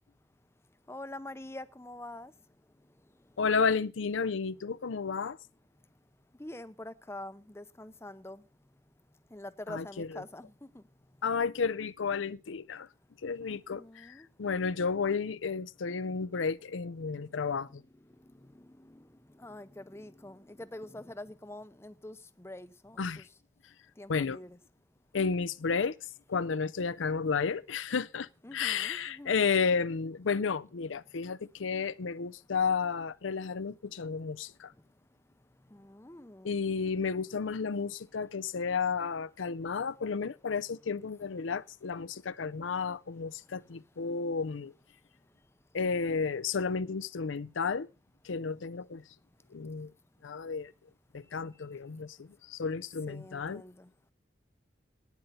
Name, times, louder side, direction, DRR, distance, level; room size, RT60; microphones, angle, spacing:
voice 1, 0.9-2.3 6.4-8.4 9.3-10.8 13.4-14.3 18.4-19.0 19.4-23.3 24.0-24.6 28.4-29.3 35.7-36.5 53.1-53.9, left 1 dB, 15° left, 0.6 m, -45 dB
voice 2, 3.4-5.4 9.7-10.1 11.2-12.9 13.2-17.8 23.0-23.2 24.1-24.4 25.1-25.9 26.3-34.7 36.4-44.7 45.7-47.9 48.2-49.0 49.5-49.9 50.2-50.7 51.1-53.6, left 5 dB, 90° left, 0.6 m, -32 dB
11.5 x 9.5 x 5.5 m
head